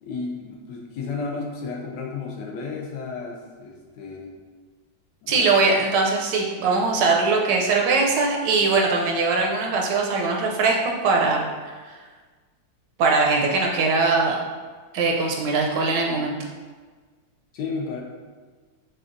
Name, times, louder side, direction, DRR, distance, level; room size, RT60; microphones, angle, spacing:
voice 1, 0.0-4.3 5.2-5.7 17.5-18.0, left 4 dB, 75° left, 0 dB, 1.1 m, -33 dB
voice 2, 5.3-11.7 13.0-14.4 14.9-16.3, right 3 dB, 75° right, 0 dB, 1.2 m, -21 dB
6.1 x 2.3 x 2.5 m, 1.4 s
omnidirectional pair, 2.0 m